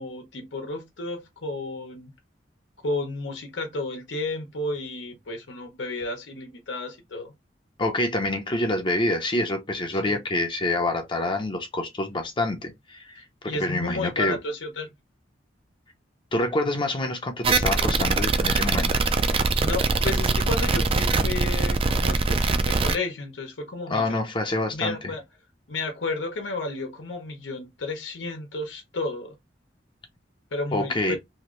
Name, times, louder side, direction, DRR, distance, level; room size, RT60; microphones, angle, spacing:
voice 1, 0.0-2.1 2.8-7.3 9.9-10.2 13.4-14.9 19.6-24.3 24.7-25.2 25.7-29.3 30.5-31.2, left 2 dB, 90° left, 0.8 m, -32 dB
voice 2, 7.8-14.4 16.3-18.9 23.9-25.0 30.7-31.2, left 2 dB, 25° left, 0.6 m, -26 dB
sound 1, 17.4-23.0, right 3 dB, 30° right, 0.3 m, -22 dB
2.9 x 2.5 x 3.0 m
head